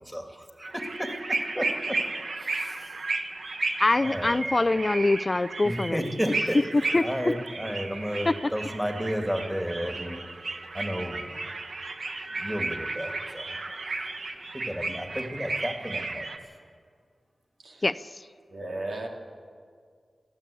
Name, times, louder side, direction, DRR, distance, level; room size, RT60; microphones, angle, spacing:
voice 1, 0.0-2.0 2.4-3.0 4.0-4.4 5.6-6.6 7.0-10.2 10.7-11.3 12.3-13.5 14.5-16.2, equal, 5° right, 4 dB, 2.2 m, -32 dB
sound 1, 0.6-16.4, right 3 dB, 70° right, 1.5 m, -34 dB
voice 2, 3.8-6.0 6.7-7.4 8.3-8.5 17.8-18.2, left 2 dB, 30° left, 14 dB, 0.4 m, -24 dB
voice 3, 18.5-19.1, right 2 dB, 85° right, 0 dB, 2.9 m, -35 dB
23.5 x 14.5 x 8.5 m, 2.1 s
wide cardioid pair, 115°, 0 cm